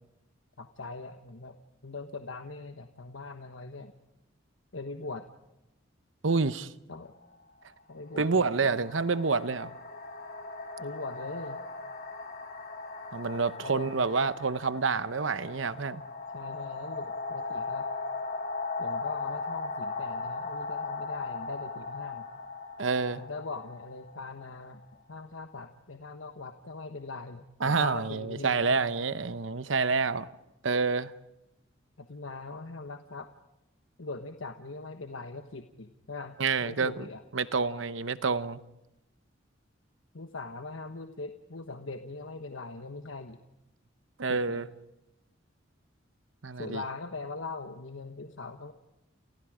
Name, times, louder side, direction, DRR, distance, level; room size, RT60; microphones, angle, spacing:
voice 1, 0.6-1.6 1.8-3.9 4.7-5.3 6.9-7.1 7.9-8.8 10.8-11.6 13.6-13.9 16.3-17.9 18.8-22.3 23.2-24.8 25.1-28.8 32.0-33.3 34.0-37.2 40.1-43.4 44.3-44.6 46.6-48.7, left 3 dB, 85° left, 1.3 m, -41 dB
voice 2, 6.2-6.7 8.2-9.7 13.1-16.0 22.8-23.2 27.6-30.3 30.6-31.1 36.4-37.1 37.3-38.6 44.2-44.7 46.4-46.8, right 4 dB, 75° right, 0.9 m, -28 dB
sound 1, 7.1-7.2 8.2-24.8, left 3 dB, 50° left, 3.6 m, -38 dB
29.5 x 29.5 x 5.1 m
head